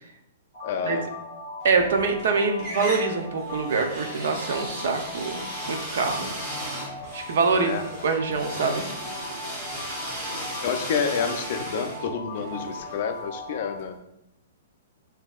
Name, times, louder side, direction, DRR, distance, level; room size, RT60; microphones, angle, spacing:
sound 1, 0.5-13.8, left 2 dB, 20° left, 1.3 m, -39 dB
voice 1, 0.6-1.1 7.5-7.9 10.6-14.0, left 6 dB, 40° left, 7 dB, 0.4 m, -29 dB
voice 2, 1.6-6.3 7.1-8.8, right 4 dB, 60° right, 5 dB, 0.6 m, -25 dB
sound 2, 1.7-2.3 2.6-13.5, right 1 dB, 15° right, 0.9 m, -36 dB
6.1 x 2.7 x 2.4 m, 0.83 s
hypercardioid pair, 170°, 0 cm